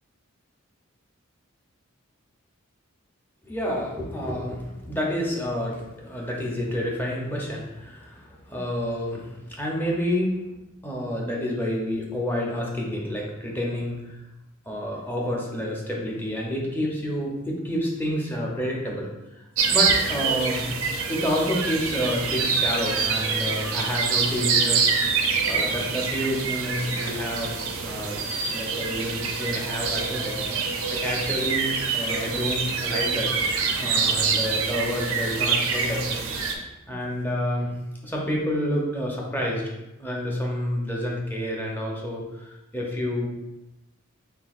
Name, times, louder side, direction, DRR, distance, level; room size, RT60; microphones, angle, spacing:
voice 1, 3.4-10.4 10.8-14.2 14.6-20.7 21.1-24.8 25.5-27.6 27.8-28.2 28.5-30.4 30.9-33.3 33.8-36.0 36.9-37.7 38.0-39.7 40.0-43.3, equal, 10° left, -3 dB, 0.7 m, -29 dB
sound 1, 19.6-36.5, right 5 dB, 70° right, 0.6 m, -26 dB
4.5 x 3.8 x 2.5 m, 0.96 s
head